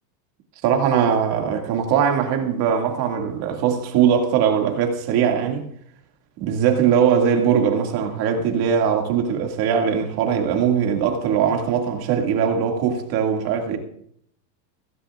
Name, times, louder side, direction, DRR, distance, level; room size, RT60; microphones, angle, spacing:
voice 1, 0.6-5.6 6.4-13.8, right 7 dB, 45° right, 2.3 m, -20 dB
16.5 x 15.0 x 2.4 m
supercardioid pair, 125°, 49 cm